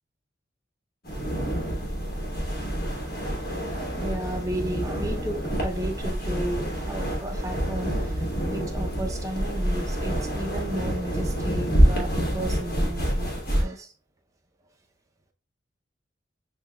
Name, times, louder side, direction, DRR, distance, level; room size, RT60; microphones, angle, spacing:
sound 1, 1.0-13.7, equal, 50° left, 1.1 m, -27 dB
voice 1, 3.2-13.9, right 1 dB, 15° right, 0.5 m, -34 dB
6.4 x 2.3 x 2.2 m
head